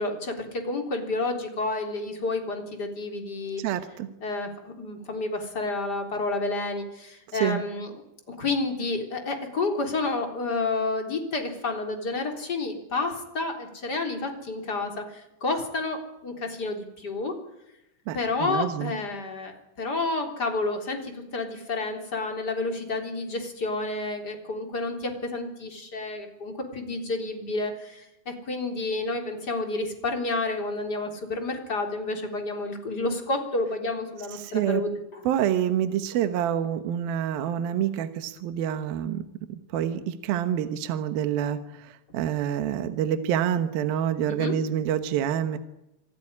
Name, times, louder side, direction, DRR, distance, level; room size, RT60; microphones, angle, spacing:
voice 1, 0.0-3.6 4.2-7.9 8.3-17.3 18.1-34.9 44.3-44.6, left 3 dB, 25° left, 3 dB, 3.9 m, -30 dB
voice 2, 3.6-4.1 7.3-7.6 18.1-18.9 34.3-34.8 35.3-39.2 39.5-45.6, right 10 dB, 75° right, 9 dB, 2.9 m, -27 dB
27.5 x 16.0 x 9.9 m, 0.87 s
omnidirectional pair, 4.5 m